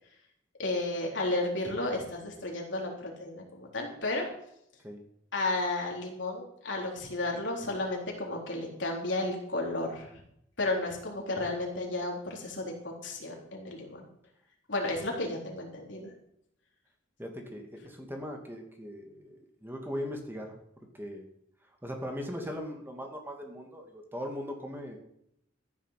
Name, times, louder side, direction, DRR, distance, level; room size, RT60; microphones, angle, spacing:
voice 1, 0.6-4.3 5.3-10.1 10.6-14.0 14.7-16.1, left 2 dB, 70° left, 0 dB, 4.0 m, -33 dB
voice 2, 17.2-20.6 20.9-21.3 21.8-25.0, equal, 10° right, 2 dB, 2.3 m, -39 dB
14.0 x 10.5 x 5.9 m, 0.75 s
head